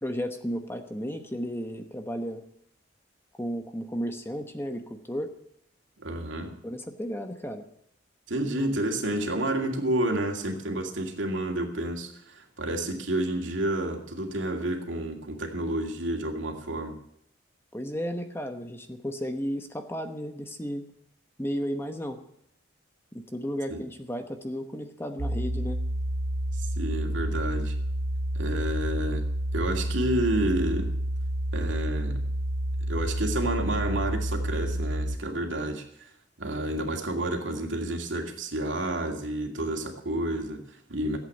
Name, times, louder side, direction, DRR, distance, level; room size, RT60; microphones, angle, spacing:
voice 1, 0.0-2.4 3.4-5.3 6.6-7.6 17.7-20.9 21.4-22.2 23.1-25.8, equal, 10° left, 6 dB, 1.1 m, -33 dB
voice 2, 6.0-6.6 8.3-17.0 23.7-23.8 26.6-27.8 28.3-29.2 29.5-30.9 31.5-32.2 32.9-36.1 36.4-41.2, right 1 dB, 80° right, 3 dB, 2.3 m, -30 dB
sound 1, 25.2-35.2, right 1 dB, 55° right, 0.7 m, -29 dB
15.0 x 8.3 x 8.5 m, 0.70 s
head